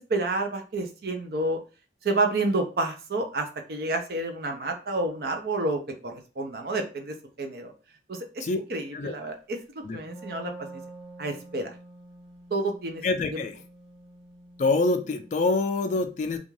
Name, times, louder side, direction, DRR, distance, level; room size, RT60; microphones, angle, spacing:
voice 1, 0.1-1.6 2.0-7.7 8.1-10.5 11.2-11.7 12.5-13.0 13.3-13.4, right 2 dB, 55° right, 4 dB, 0.5 m, -29 dB
Wind instrument woodwind instrument, 9.9-15.6, right 2 dB, 30° right, 1.3 m, -47 dB
voice 2, 13.0-13.6 14.6-16.4, left 3 dB, 40° left, 7 dB, 0.3 m, -25 dB
2.5 x 2.3 x 3.1 m, 0.34 s
head